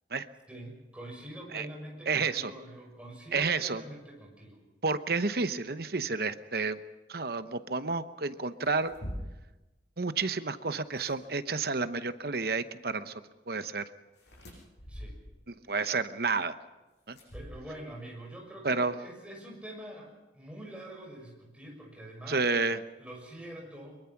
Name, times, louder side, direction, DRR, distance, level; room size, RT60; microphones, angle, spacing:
voice 1, 0.5-4.6 14.9-15.2 17.3-22.4 23.0-24.0, right 1 dB, 5° right, -1 dB, 6.2 m, -45 dB
voice 2, 2.1-2.5 3.3-3.8 4.8-6.8 7.1-8.9 10.0-13.1 13.5-13.8 15.5-16.5 17.1-17.2 18.6-18.9 22.3-22.8, right 4 dB, 55° right, 11 dB, 0.9 m, -30 dB
sound 1, 8.6-9.6 10.8-11.2 14.1-15.5 17.1-18.0, equal, 65° left, 7.5 m, -43 dB
24.0 x 22.5 x 6.0 m, 1.1 s
head